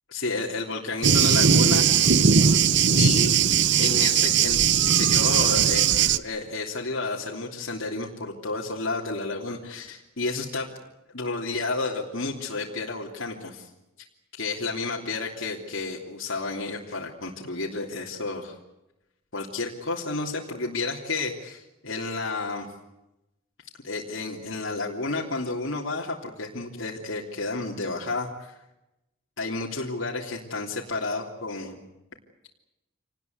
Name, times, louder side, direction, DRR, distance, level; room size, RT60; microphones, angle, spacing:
voice 1, 0.1-1.9 2.9-3.4 3.8-4.6 5.0-10.7 11.1-13.7 14.4-18.5 19.3-22.7 23.8-28.5 29.4-31.8, left 3 dB, 70° left, -2 dB, 3.3 m, -31 dB
Thunder, 1.0-6.2, right 7 dB, 55° right, 0.8 m, -19 dB
27.5 x 19.5 x 8.1 m, 0.92 s
head